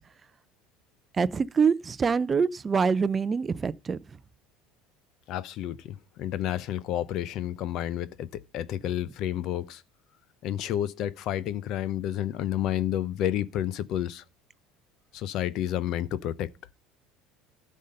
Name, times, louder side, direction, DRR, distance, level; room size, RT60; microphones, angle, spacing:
voice 1, 1.2-4.0, right 5 dB, 20° right, 0.4 m, -25 dB
voice 2, 5.3-9.8 10.4-14.2 15.1-16.5, left 11 dB, 55° left, 0.6 m, -30 dB
12.5 x 5.5 x 5.3 m
cardioid pair, 130°, 0 cm